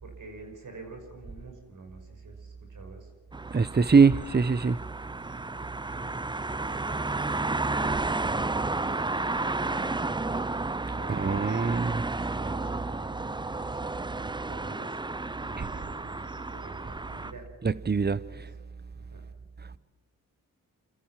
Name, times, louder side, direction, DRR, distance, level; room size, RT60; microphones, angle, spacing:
voice 1, 0.0-3.1 5.8-10.3 10.9-11.5 12.0-13.8 14.1-17.5 18.3-18.6 18.9-19.3 19.7-19.8, right 3 dB, 60° right, 5.7 m, -48 dB
sound 1, 3.3-17.3, right 3 dB, 15° right, 0.6 m, -32 dB
voice 2, 3.5-4.8 11.1-12.0 15.6-15.7 17.6-18.2, right 5 dB, 30° right, 0.9 m, -23 dB
27.0 x 14.0 x 7.5 m
cardioid pair, 50°, 35 cm